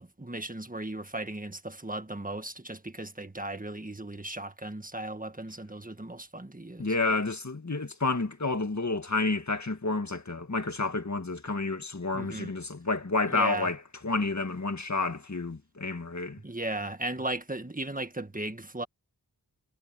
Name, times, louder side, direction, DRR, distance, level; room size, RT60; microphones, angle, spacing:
voice 1, 0.0-6.9 12.1-12.5 13.3-13.7 16.4-18.9, right 1 dB, 20° right, 1.6 m, -36 dB
voice 2, 6.8-16.4, left 3 dB, 45° left, 2.0 m, -30 dB
wide cardioid pair, 60°, 41 cm